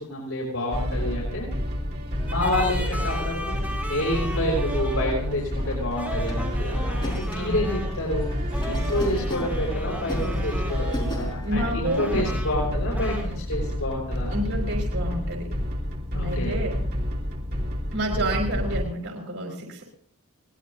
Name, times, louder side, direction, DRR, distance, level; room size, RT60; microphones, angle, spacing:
voice 1, 0.0-1.5 2.2-10.9 11.1-14.4 16.1-16.6, left 1 dB, 80° left, -3 dB, 6.0 m, -29 dB
sound 1, 0.7-18.8, equal, 50° right, 2.8 m, -29 dB
sound 2, 2.3-5.2 6.0-8.0 8.5-11.3 11.8-12.7 13.0-13.2, right 1 dB, 10° right, 5.5 m, -36 dB
sound 3, 3.5-11.6, equal, 20° left, 5.0 m, -40 dB
voice 2, 7.4-7.7 11.2-12.3 14.3-15.5 16.2-16.8 17.9-19.8, right 1 dB, 90° right, -1 dB, 3.9 m, -29 dB
23.0 x 18.5 x 2.6 m, 0.65 s
head